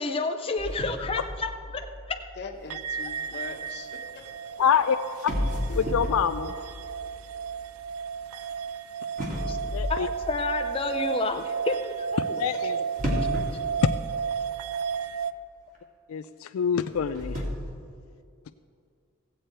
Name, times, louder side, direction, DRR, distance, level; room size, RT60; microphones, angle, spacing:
voice 1, 0.0-2.2 9.5-9.6 9.9-12.2, left 3 dB, 25° left, 4 dB, 0.5 m, -30 dB
sound 1, 0.6-3.7 4.7-4.8 5.2-8.5 9.2-11.1 13.0-14.7 15.0-15.1 15.7-15.8 16.8-17.5, equal, 40° right, 2.2 m, -33 dB
voice 2, 2.4-4.6 5.7-6.2 12.3-12.8, left 3 dB, 55° left, 4 dB, 1.1 m, -42 dB
sound 2, 2.7-15.3, right 7 dB, 75° right, 0.4 m, -33 dB
voice 3, 4.6-5.0 5.8-6.5 9.7-10.1 12.4-12.8 13.1-13.2 16.1-17.4, left 7 dB, 85° left, 10 dB, 0.3 m, -26 dB
16.0 x 8.0 x 4.5 m, 2.3 s
head